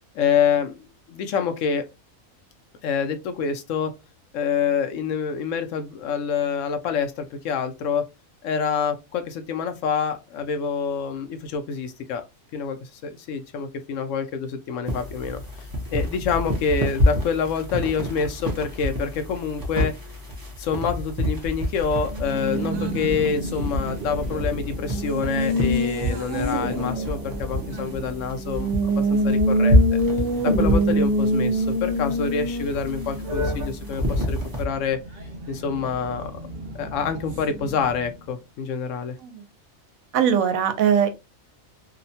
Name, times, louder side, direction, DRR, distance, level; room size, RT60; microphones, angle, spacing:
voice 1, 0.1-0.7 1.1-1.8 2.8-3.9 4.3-8.0 8.4-12.2 12.5-15.4 15.9-19.9 20.6-30.0 30.4-35.0 35.5-36.3 36.8-39.2, left 6 dB, 70° left, 0.9 m, -27 dB
sound 1, 14.9-34.7, left 1 dB, 20° right, 0.6 m, -28 dB
Race car auto racing, 22.1-38.3, right 1 dB, 55° right, 0.7 m, -27 dB
voice 2, 40.1-41.1, right 8 dB, 85° right, 1.1 m, -20 dB
2.8 x 2.1 x 2.7 m
omnidirectional pair, 1.4 m